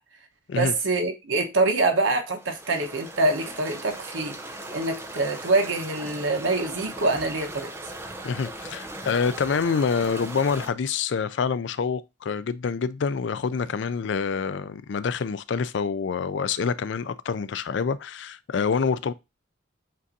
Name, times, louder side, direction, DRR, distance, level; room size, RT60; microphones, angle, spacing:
voice 1, 0.5-4.4 4.7-7.7, right 2 dB, 80° right, 1.1 m, -25 dB
sound 1, 2.4-10.7, right 1 dB, 15° right, 0.6 m, -39 dB
voice 2, 8.2-19.1, left 5 dB, 65° left, 0.4 m, -26 dB
7.4 x 2.6 x 2.7 m
head